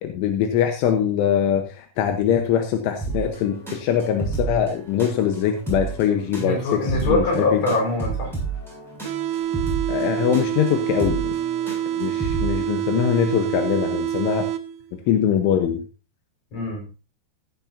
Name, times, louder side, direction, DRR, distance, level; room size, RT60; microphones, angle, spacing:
voice 1, 0.0-7.6 9.9-11.3 12.0-14.5 15.1-15.8, left 9 dB, 85° left, 6 dB, 3.5 m, -22 dB
sound 1, 3.0-12.8, right 4 dB, ahead, 6.8 m, -31 dB
voice 2, 6.4-8.3 16.5-16.8, left 2 dB, 35° left, 0 dB, 5.9 m, -23 dB
sound 2, 9.1-15.0, right 11 dB, 85° right, 2.2 m, -27 dB
15.0 x 10.5 x 2.7 m, 0.31 s
omnidirectional pair, 5.5 m